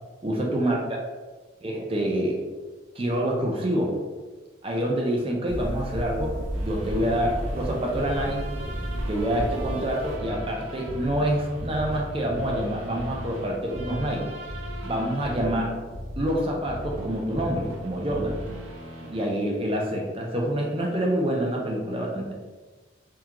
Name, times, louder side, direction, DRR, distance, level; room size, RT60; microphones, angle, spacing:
voice 1, 0.2-0.8 1.6-2.4 3.0-3.9 4.6-8.4 9.1-14.3 14.8-15.8 16.2-18.4 19.1-22.3, right 1 dB, 30° right, -1 dB, 0.5 m, -27 dB
sound 1, 5.4-10.1, equal, 70° left, 1.1 m, -33 dB
sound 2, 6.5-19.3, equal, 85° right, 0.6 m, -37 dB
3.5 x 2.4 x 2.9 m, 1.3 s
head